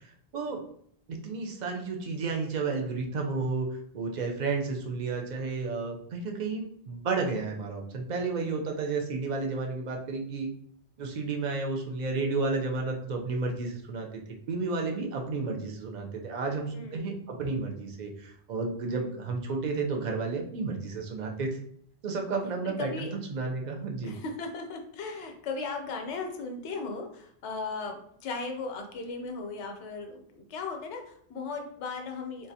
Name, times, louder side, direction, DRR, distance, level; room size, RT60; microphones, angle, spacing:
voice 1, 1.1-3.7 3.9-10.5 11.0-14.2 14.5-21.5 22.0-24.1, right 4 dB, 50° right, 1 dB, 0.6 m, -32 dB
voice 2, 16.7-17.2 18.9-19.2 22.6-23.1 24.0-32.5, left 4 dB, 85° left, 4 dB, 0.9 m, -37 dB
3.9 x 2.4 x 2.7 m, 0.64 s
omnidirectional pair, 1.1 m